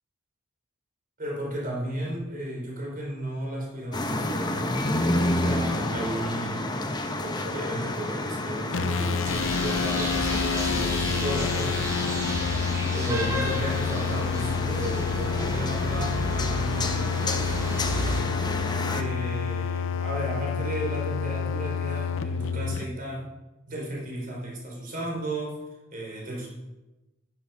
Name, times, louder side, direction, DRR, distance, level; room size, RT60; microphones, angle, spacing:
voice 1, 1.2-6.7 7.2-12.2 12.9-17.3 18.8-23.2 23.7-25.6 25.9-26.5, right 1 dB, 40° right, -2 dB, 4.2 m, -34 dB
sound 1, 3.9-19.0, left 1 dB, 20° left, 1.0 m, -30 dB
sound 2, 8.7-22.8, left 6 dB, 65° left, 0.6 m, -29 dB
sound 3, 9.2-18.2, equal, 15° right, 2.6 m, -33 dB
11.0 x 10.0 x 5.8 m, 1.0 s
head